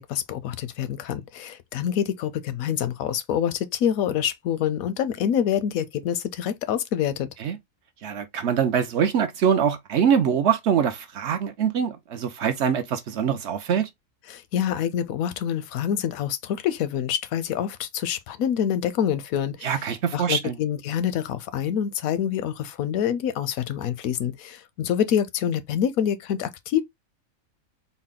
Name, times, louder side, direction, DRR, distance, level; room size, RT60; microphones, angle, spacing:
voice 1, 0.0-7.3 14.3-19.7 20.1-26.8, left 9 dB, 85° left, 1.0 m, -26 dB
voice 2, 8.0-13.9 19.6-20.6, right 8 dB, 65° right, 0.8 m, -23 dB
4.1 x 2.1 x 3.6 m
omnidirectional pair, 1.5 m